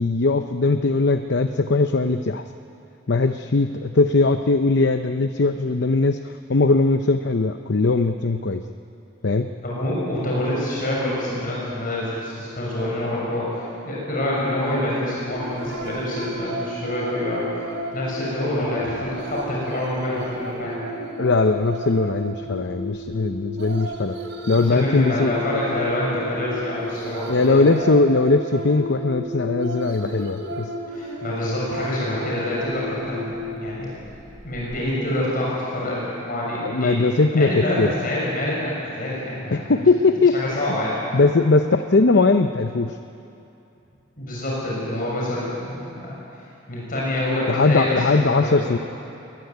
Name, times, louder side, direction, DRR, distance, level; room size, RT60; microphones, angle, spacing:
voice 1, 0.0-2.4 3.1-8.6 9.2-9.5 21.2-24.1 24.5-25.3 27.3-30.7 36.6-37.9 39.5-40.4 41.1-43.0 47.5-48.8, left 3 dB, 65° left, 8 dB, 0.7 m, -20 dB
voice 2, 9.6-17.6 17.9-20.8 22.7-22.8 24.6-27.7 30.9-33.9 34.4-37.0 37.3-39.9 40.3-41.0 44.2-46.2 46.7-48.8, left 1 dB, 50° left, -5 dB, 7.0 m, -26 dB
sound 1, 15.2-34.8, equal, 70° right, 4.1 m, -33 dB
22.0 x 19.5 x 9.5 m, 2.8 s
head